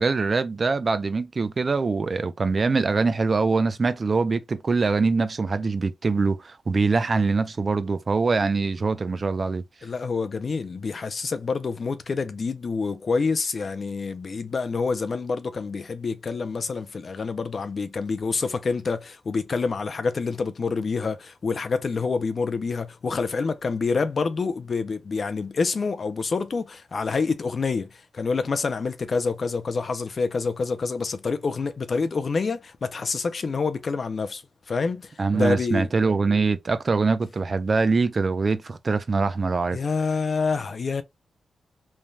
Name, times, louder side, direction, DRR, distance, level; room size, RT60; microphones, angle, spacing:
voice 1, 0.0-9.6 35.2-39.8, right 4 dB, 35° right, 0.4 m, -23 dB
voice 2, 9.8-35.9 39.7-41.0, left 4 dB, 40° left, 0.4 m, -27 dB
3.1 x 2.2 x 2.5 m
wide cardioid pair, 155°, 0 cm